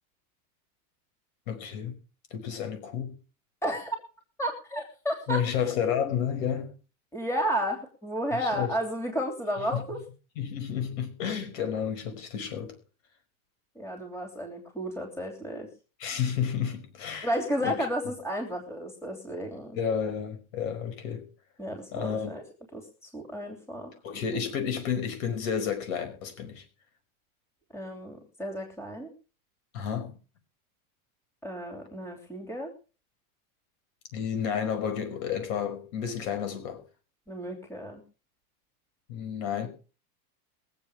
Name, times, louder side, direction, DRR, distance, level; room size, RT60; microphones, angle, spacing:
voice 1, 1.5-2.0 2.3-3.2 5.3-6.7 8.4-8.7 9.7-9.8 10.4-12.8 16.0-17.3 17.6-17.9 19.7-21.3 21.9-22.3 24.0-26.6 29.7-30.2 34.1-36.8 39.1-39.7, left 8 dB, 60° left, 5.3 m, -31 dB
voice 2, 3.6-4.0 4.4-5.7 7.1-10.0 13.7-15.7 17.2-19.8 21.6-22.4 22.7-23.9 27.7-29.1 31.4-32.7 37.3-38.0, equal, 5° left, 3.1 m, -32 dB
22.5 x 8.0 x 5.0 m
supercardioid pair, 155°, 44 cm